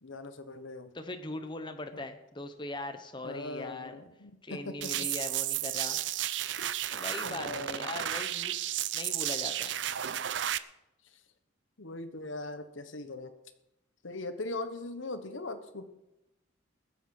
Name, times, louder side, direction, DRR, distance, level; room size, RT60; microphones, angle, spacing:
voice 1, 0.0-0.9 1.9-2.0 3.2-5.1 6.6-6.9 7.2-7.9 11.1-11.2 11.8-13.3 14.0-15.8, left 2 dB, 75° left, 10 dB, 1.2 m, -40 dB
voice 2, 0.9-4.0 4.4-6.0 6.9-8.6 8.9-9.7, left 2 dB, 25° left, 7 dB, 0.9 m, -40 dB
sound 1, 4.8-10.6, right 11 dB, 65° right, 0.5 m, -33 dB
21.0 x 7.5 x 5.9 m, 0.93 s
head